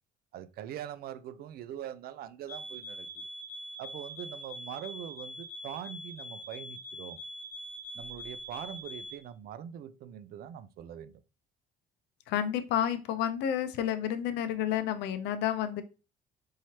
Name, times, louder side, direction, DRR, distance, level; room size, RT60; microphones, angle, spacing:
voice 1, 0.3-3.3 3.8-7.2 7.9-11.2, right 10 dB, 65° right, 0.4 m, -43 dB
sound 1, 2.5-9.2, equal, 60° left, 0.9 m, -43 dB
voice 2, 12.3-15.8, left 10 dB, 85° left, 0.6 m, -30 dB
4.6 x 3.0 x 2.8 m
cardioid pair, 110°, 17 cm